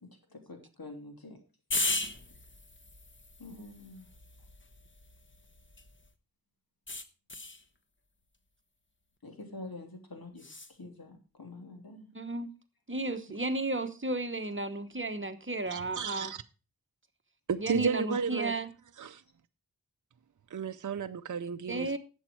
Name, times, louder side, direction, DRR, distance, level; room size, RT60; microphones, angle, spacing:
voice 1, 0.0-1.4 3.4-4.1 9.2-12.1, left 2 dB, 75° left, 3.3 m, -47 dB
sound 1, 1.7-6.1 6.9-7.6 10.4-10.7, left 2 dB, 30° left, 1.2 m, -37 dB
voice 2, 12.1-12.5 12.9-16.3 17.6-18.7 21.7-22.0, right 2 dB, 35° right, 1.2 m, -33 dB
voice 3, 15.7-16.4 17.5-18.5 19.0-19.2 20.5-22.0, right 6 dB, 55° right, 0.6 m, -33 dB
11.5 x 8.1 x 4.6 m
wide cardioid pair, 70°, 37 cm